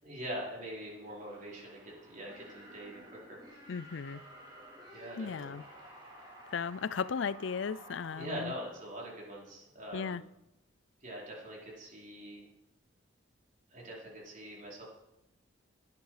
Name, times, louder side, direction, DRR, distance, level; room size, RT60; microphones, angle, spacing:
voice 1, 0.0-3.4 4.9-5.6 8.1-10.2 11.0-12.5 13.7-14.8, equal, 40° right, 4.7 m, -43 dB
sound 1, 0.7-9.5, equal, 25° right, 5.0 m, -53 dB
voice 2, 3.7-4.2 5.2-5.6 6.5-8.5 9.9-10.2, left 6 dB, 70° left, 0.5 m, -36 dB
18.5 x 11.0 x 5.0 m
head